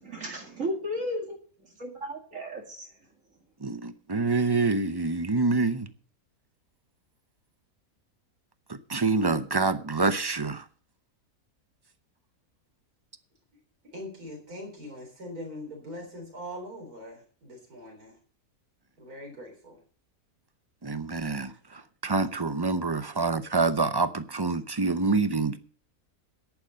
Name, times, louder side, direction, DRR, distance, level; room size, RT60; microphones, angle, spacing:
voice 1, 0.0-1.2 1.8-2.9, equal, 55° right, 2.6 m, -34 dB
voice 2, 3.6-5.9 8.9-10.6 20.8-25.6, right 3 dB, 30° right, 0.4 m, -26 dB
voice 3, 13.9-18.2 19.0-19.8, left 1 dB, 80° right, 4.3 m, -42 dB
10.5 x 9.6 x 6.4 m
omnidirectional pair, 1.6 m